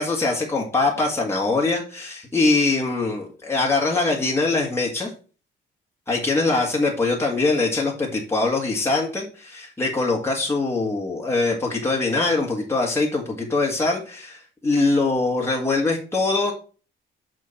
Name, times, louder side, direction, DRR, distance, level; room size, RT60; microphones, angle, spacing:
voice 1, 0.0-5.1 6.1-16.5, left 3 dB, 10° left, -2 dB, 1.8 m, -23 dB
6.4 x 3.8 x 5.4 m, 0.37 s
cardioid pair, 90°, 20 cm